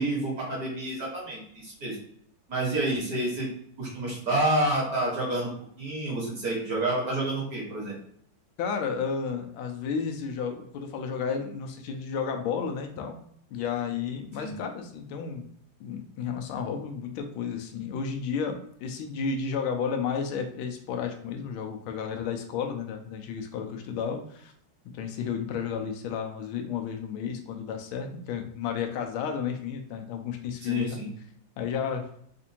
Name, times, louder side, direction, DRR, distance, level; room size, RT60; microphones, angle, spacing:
voice 1, 0.0-2.0 2.5-3.5 3.8-5.5 5.8-7.9 14.4-14.6 30.6-31.1, right 1 dB, 50° right, -4 dB, 1.7 m, -29 dB
voice 2, 8.6-13.1 13.5-15.5 15.8-24.5 24.9-31.0 31.6-32.1, left 6 dB, 85° left, 4 dB, 1.5 m, -32 dB
4.4 x 2.5 x 2.8 m, 0.66 s
omnidirectional pair, 2.2 m